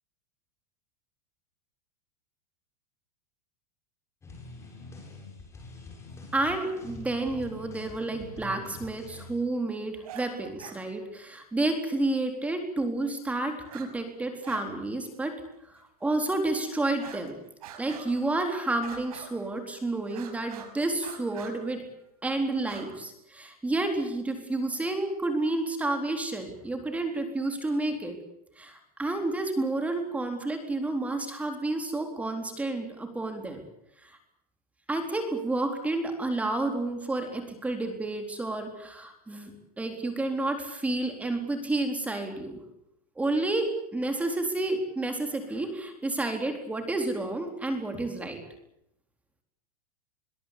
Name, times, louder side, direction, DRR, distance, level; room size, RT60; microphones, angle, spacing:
sound 1, 4.2-9.4, left 2 dB, 15° left, 7.3 m, -45 dB
voice 1, 6.3-15.4 15.6-17.4 17.8-21.8 22.2-28.2 28.6-33.6 34.0-34.2 34.9-42.6 43.2-48.4, right 2 dB, 5° right, 5 dB, 4.0 m, -30 dB
sound 2, 10.0-10.3 10.6-10.8 12.4-12.5 13.6-13.9 14.2-14.7 15.0-15.1 15.8-15.9 16.9-17.3 17.6-18.3 18.8-19.5 20.0-20.7 21.0-21.6 22.5-22.9, right 9 dB, 75° right, 6.2 m, -45 dB
23.0 x 22.5 x 8.5 m, 0.80 s
supercardioid pair, 155°, 19 cm